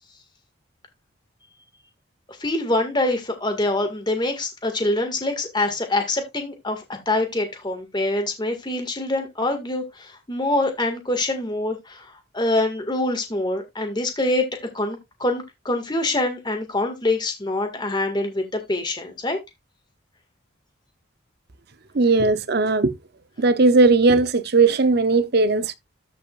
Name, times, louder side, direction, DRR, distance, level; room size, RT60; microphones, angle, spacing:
voice 1, 2.4-14.5 14.7-19.4, left 2 dB, 20° left, 1.9 m, -25 dB
voice 2, 21.9-22.9 23.4-25.7, right 3 dB, 50° right, 0.7 m, -18 dB
14.0 x 5.4 x 2.5 m
head